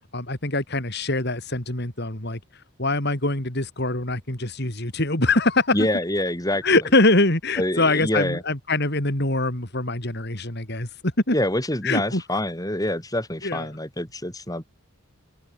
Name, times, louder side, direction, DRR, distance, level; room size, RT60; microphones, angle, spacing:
voice 1, 0.1-2.4 2.8-5.9 6.6-10.9 11.3-11.4 11.8-12.2 13.4-13.7, left 2 dB, 50° left, 3.9 m, -23 dB
voice 2, 5.7-6.6 7.6-8.4 11.3-14.7, left 1 dB, 15° left, 6.7 m, -26 dB
head